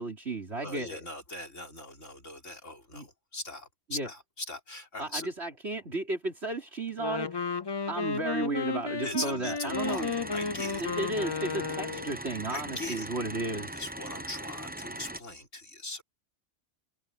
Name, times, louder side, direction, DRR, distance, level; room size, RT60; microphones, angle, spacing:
voice 1, 0.0-1.0 2.9-3.1 3.9-4.1 5.0-7.4 7.9-10.1 10.8-13.8, right 2 dB, 60° right, 4.4 m, -34 dB
voice 2, 0.6-5.3 9.0-10.1 10.3-10.8 12.5-13.1 13.7-16.0, left 2 dB, 85° left, 5.5 m, -40 dB
Wind instrument woodwind instrument, 6.9-12.2, left 5 dB, 30° left, 0.4 m, -33 dB
sound 1, 9.7-15.2, right 1 dB, 10° right, 0.6 m, -40 dB
omnidirectional pair, 1.2 m